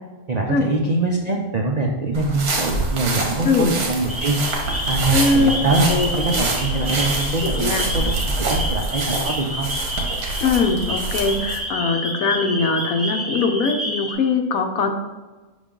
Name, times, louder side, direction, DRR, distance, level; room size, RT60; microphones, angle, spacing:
voice 1, 0.3-4.4 4.9-5.9 6.2-9.7, right 2 dB, 65° right, 0 dB, 0.4 m, -23 dB
sound 1, 2.1-11.6, right 3 dB, 85° right, 1.6 m, -26 dB
sound 2, 4.1-14.1, equal, 10° right, 0.7 m, -29 dB
voice 2, 5.1-5.5 5.9-6.4 7.4-7.9 10.4-14.9, left 4 dB, 75° left, 6 dB, 1.1 m, -21 dB
5.5 x 5.1 x 3.7 m, 1.3 s
omnidirectional pair, 1.5 m